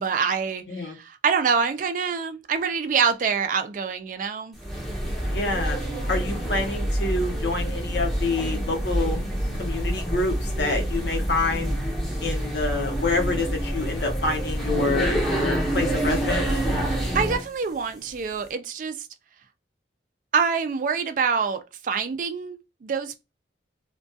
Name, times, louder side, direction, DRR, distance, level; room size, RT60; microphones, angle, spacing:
voice 1, 0.0-4.6 16.9-19.1 20.3-23.2, right 6 dB, 45° right, 0.3 m, -26 dB
sound 1, 4.6-17.5, right 1 dB, ahead, 0.6 m, -27 dB
voice 2, 5.3-5.8 6.1-9.2 9.6-11.8 12.2-16.4, left 3 dB, 70° left, 0.8 m, -27 dB
2.3 x 2.2 x 2.6 m
head